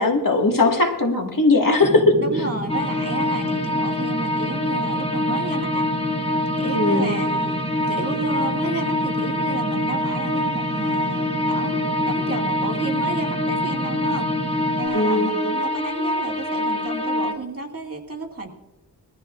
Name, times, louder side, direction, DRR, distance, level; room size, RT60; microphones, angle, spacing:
voice 1, 0.0-2.2 6.7-7.1 14.9-15.3, left 2 dB, 55° left, 3 dB, 1.7 m, -18 dB
sound 1, 1.8-14.9, equal, 35° left, 3.0 m, -31 dB
voice 2, 2.2-5.9 6.2-7.6 7.9-14.3 14.8-18.5, right 2 dB, 35° right, 0 dB, 2.2 m, -32 dB
sound 2, 2.7-17.3, left 1 dB, 15° left, 1.5 m, -25 dB
21.0 x 14.0 x 2.4 m, 1.0 s
wide cardioid pair, 85°, 40 cm